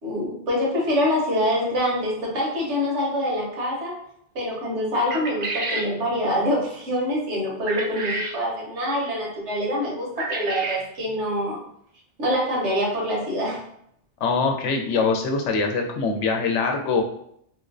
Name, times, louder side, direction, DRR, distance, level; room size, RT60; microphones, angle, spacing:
voice 1, 0.0-3.9 4.3-11.6 12.2-13.6, equal, 80° right, -3 dB, 1.4 m, -25 dB
sound 1, 5.1-5.9 7.7-8.4 10.2-10.8, right 2 dB, 60° right, 0.4 m, -29 dB
voice 2, 14.2-17.0, left 4 dB, 90° left, 3 dB, 0.9 m, -23 dB
3.1 x 3.0 x 2.5 m, 0.71 s
omnidirectional pair, 1.2 m